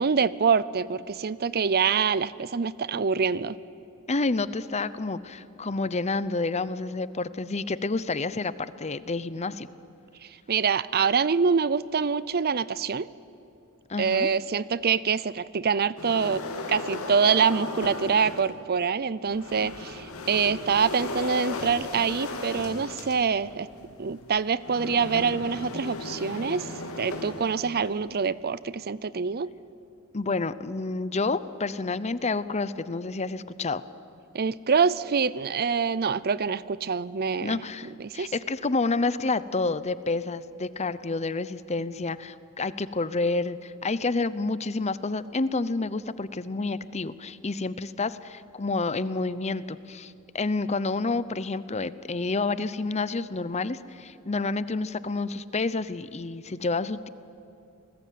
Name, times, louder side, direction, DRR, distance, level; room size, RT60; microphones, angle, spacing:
voice 1, 0.0-3.5 10.5-13.1 14.0-16.4 16.7-23.7 24.0-26.7 27.0-29.5 34.3-37.6 38.0-38.3, right 6 dB, 45° right, 18 dB, 0.6 m, -25 dB
voice 2, 4.1-9.7 13.9-14.3 30.1-33.8 37.4-57.1, left 3 dB, 30° left, 15 dB, 0.7 m, -29 dB
sound 1, 16.0-18.6 19.2-28.1, left 2 dB, 75° left, 3.0 m, -36 dB
29.5 x 20.0 x 9.4 m, 2.8 s
head